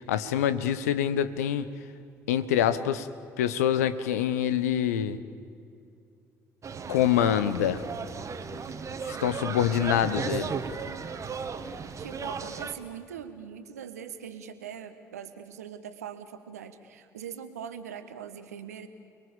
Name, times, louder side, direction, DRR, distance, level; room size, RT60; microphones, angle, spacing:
voice 1, 0.1-1.7 2.3-3.1 3.4-5.2 6.9-7.8 9.0-10.5, left 10 dB, 75° left, 13 dB, 1.1 m, -25 dB
sound 1, 6.6-12.7, right 5 dB, 40° right, 1.9 m, -35 dB
voice 2, 12.0-18.9, right 8 dB, 80° right, 10 dB, 1.5 m, -41 dB
29.5 x 22.0 x 7.2 m, 2.5 s
figure-of-eight pair, 50°, 8 cm